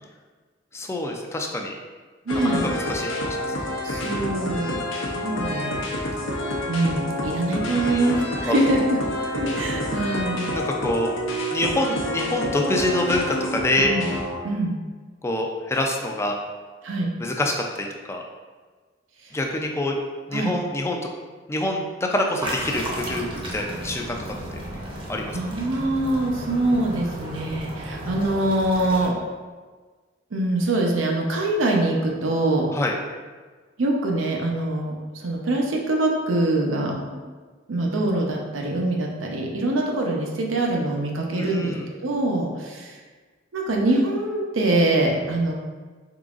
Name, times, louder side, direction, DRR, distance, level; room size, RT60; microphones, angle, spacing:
voice 1, 0.7-1.7 2.4-3.6 3.9-4.1 7.9-8.0 8.5-8.6 10.5-11.1 11.5-13.9 15.2-16.4 17.2-18.2 19.3-20.0 20.3-21.0 21.5-24.3 25.1-25.4 32.7-33.0 41.4-41.8, left 1 dB, 15° left, 2 dB, 0.4 m, -26 dB
sound 1, 2.3-14.4, left 1 dB, 90° left, 0.7 m, -28 dB
voice 2, 2.3-2.6 3.8-4.8 5.1-5.8 6.7-9.0 9.3-10.5 13.8-14.1 14.4-14.8 16.8-17.1 20.3-20.6 25.3-29.2 30.3-32.7 33.8-37.3 37.7-41.7 42.0-43.0 43.5-45.5, right 2 dB, 85° right, 0 dB, 0.7 m, -24 dB
sound 2, 22.4-29.1, right 1 dB, 30° right, 0.6 m, -34 dB
3.8 x 3.8 x 2.4 m, 1.4 s
head